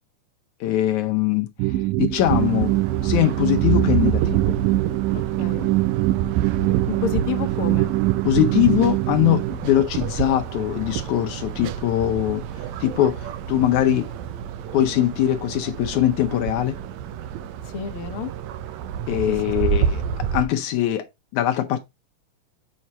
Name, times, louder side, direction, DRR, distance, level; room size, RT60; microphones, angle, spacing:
voice 1, 0.6-2.7 3.0-4.6 8.2-12.4 12.8-14.1 14.7-16.8 19.1-20.0 20.3-21.0 21.3-21.8, left 12 dB, 75° left, 1.9 m, -22 dB
sound 1, 1.6-9.5, right 17 dB, 90° right, 2.2 m, -23 dB
sound 2, 2.2-20.5, right 8 dB, 75° right, 1.8 m, -29 dB
voice 2, 5.4-5.7 6.9-7.9 17.7-18.3 19.3-19.4, left 8 dB, 60° left, 1.5 m, -29 dB
7.4 x 4.6 x 4.0 m
omnidirectional pair, 3.7 m